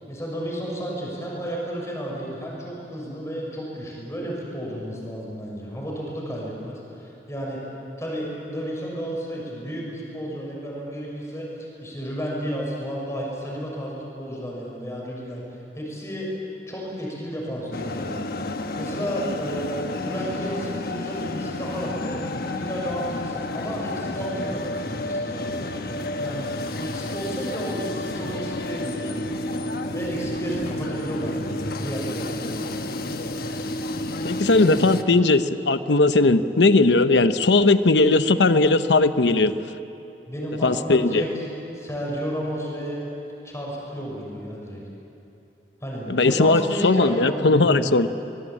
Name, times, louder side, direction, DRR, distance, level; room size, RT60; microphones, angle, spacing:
voice 1, 0.0-7.6 8.0-11.5 11.8-16.3 16.7-18.2 18.7-22.2 22.4-25.8 26.1-26.5 26.8-29.3 29.9-31.4 31.8-32.7 40.3-41.4 41.7-43.0 43.4-44.8 45.8-47.8, equal, 15° left, -3 dB, 6.5 m, -32 dB
sound 1, 17.7-35.0, left 1 dB, 60° left, 1.2 m, -30 dB
voice 2, 34.2-39.5 40.6-41.2 46.1-48.1, left 3 dB, 80° left, 11 dB, 0.9 m, -18 dB
24.5 x 20.5 x 8.9 m, 2.8 s
head